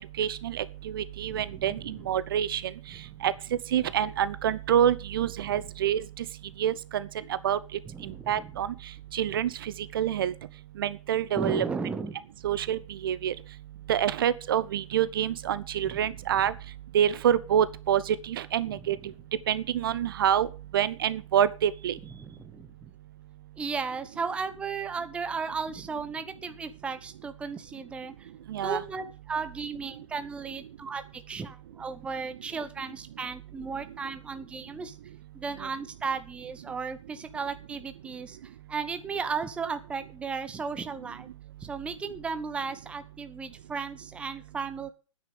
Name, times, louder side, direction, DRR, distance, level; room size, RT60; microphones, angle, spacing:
voice 1, 0.2-2.6 3.2-3.3 3.7-6.2 6.6-7.1 7.4-7.6 8.3-8.7 9.1-10.3 10.8-11.6 12.4-13.3 13.9-16.5 16.9-19.0 19.5-20.5 20.7-22.0 28.5-28.8, right 10 dB, 45° right, 0.9 m, -26 dB
voice 2, 1.2-1.9 3.1-3.2 7.9-8.5 11.3-12.2 15.9-16.4 18.7-19.1 22.2-22.7 23.6-28.3 28.6-35.0 35.3-41.3 41.6-44.9, right 5 dB, 5° right, 0.8 m, -35 dB
9.6 x 9.0 x 7.8 m
figure-of-eight pair, 120°, 16 cm